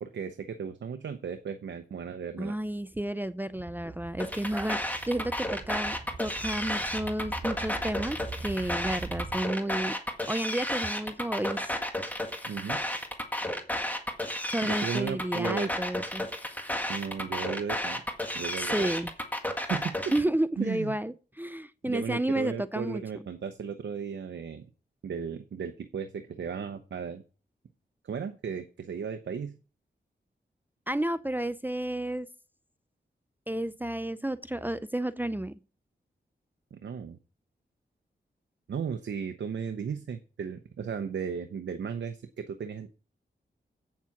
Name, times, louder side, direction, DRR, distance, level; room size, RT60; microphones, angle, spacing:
voice 1, 0.0-2.5 12.5-12.8 14.6-15.7 16.9-18.0 18.3-18.9 19.6-20.0 20.6-21.0 21.9-24.6 25.0-27.2 28.0-29.6 36.7-37.2 38.7-42.9, right 6 dB, 90° right, 0.8 m, -35 dB
voice 2, 2.4-10.0 10.3-11.8 14.5-16.3 18.6-19.1 20.1-23.0 30.9-32.3 33.5-35.6, right 1 dB, 10° right, 0.5 m, -31 dB
sound 1, 3.5-9.4, right 3 dB, 60° right, 2.5 m, -42 dB
sound 2, 4.2-20.2, left 1 dB, 10° left, 1.8 m, -32 dB
8.6 x 7.3 x 5.9 m
cardioid pair, 65°, 18 cm